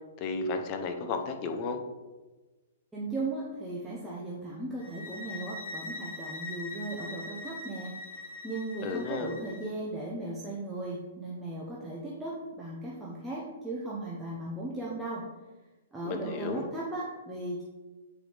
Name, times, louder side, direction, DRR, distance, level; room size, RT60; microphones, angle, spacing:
voice 1, 0.2-1.8 8.8-9.3 16.0-16.7, left 4 dB, 30° left, 6 dB, 0.8 m, -33 dB
voice 2, 2.9-15.2 15.9-17.6, right 2 dB, 5° right, -6 dB, 0.9 m, -37 dB
sound 1, 4.8-9.7, left 3 dB, 65° left, 1.4 m, -42 dB
8.2 x 4.8 x 3.5 m, 1.2 s
hypercardioid pair, 150°, 0 cm